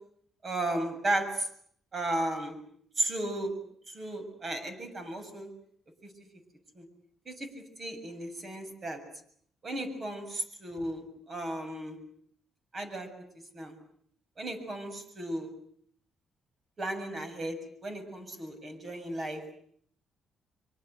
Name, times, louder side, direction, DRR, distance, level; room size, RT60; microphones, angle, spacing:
voice 1, 0.4-1.5 1.9-2.6 3.0-3.6 3.9-5.5 6.0-6.1 6.8-6.9 7.3-7.5 7.8-9.0 9.6-12.0 12.7-13.1 13.5-13.7 14.4-15.5 16.8-19.4, right 1 dB, 40° right, 7 dB, 7.0 m, -34 dB
25.0 x 24.5 x 8.2 m, 0.64 s
cardioid pair, 90°, 0 cm